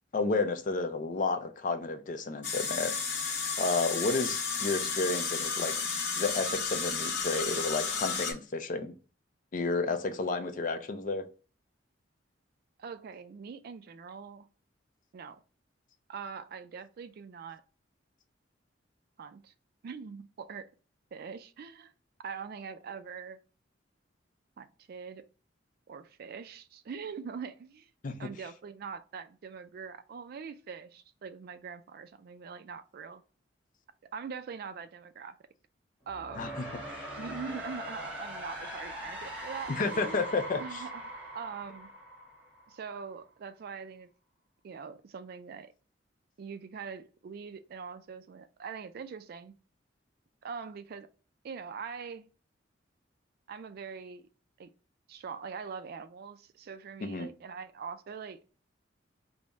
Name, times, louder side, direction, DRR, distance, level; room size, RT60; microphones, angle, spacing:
voice 1, 0.1-2.9 3.6-5.7 6.2-8.9 9.5-11.2 28.0-28.2 36.4-37.1 39.7-40.8 57.0-57.3, left 3 dB, 45° left, 0.4 m, -31 dB
sound 1, 2.4-8.3, left 5 dB, 70° left, 0.8 m, -32 dB
voice 2, 12.8-14.5 15.1-15.4 16.1-17.6 19.2-19.5 19.8-20.7 21.1-21.9 22.2-23.4 24.6-25.3 25.9-27.9 28.2-33.2 34.1-35.4 36.1-36.5 37.2-40.2 40.6-41.0 41.3-41.9 42.7-44.1 44.6-45.7 46.4-49.5 50.4-51.1 51.4-52.3 53.5-54.2 54.6-54.7 55.1-58.4, right 6 dB, 55° right, 0.3 m, -43 dB
sound 2, 36.0-43.0, equal, 10° right, 1.6 m, -41 dB
3.5 x 2.0 x 3.9 m
head